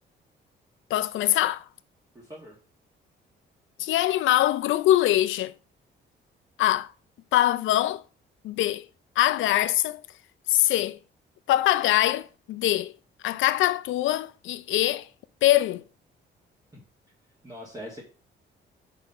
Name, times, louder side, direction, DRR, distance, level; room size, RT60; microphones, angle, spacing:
voice 1, 0.9-1.6 3.8-5.5 6.6-6.9 7.3-8.0 8.4-8.9 9.2-10.0 10.5-11.0 11.5-12.9 13.2-15.1 15.4-15.8, left 14 dB, 75° left, 0.5 m, -23 dB
voice 2, 2.1-2.6 16.7-16.8 17.4-18.0, equal, 20° right, 1.9 m, -41 dB
4.9 x 4.1 x 5.5 m
cardioid pair, 90°, 20 cm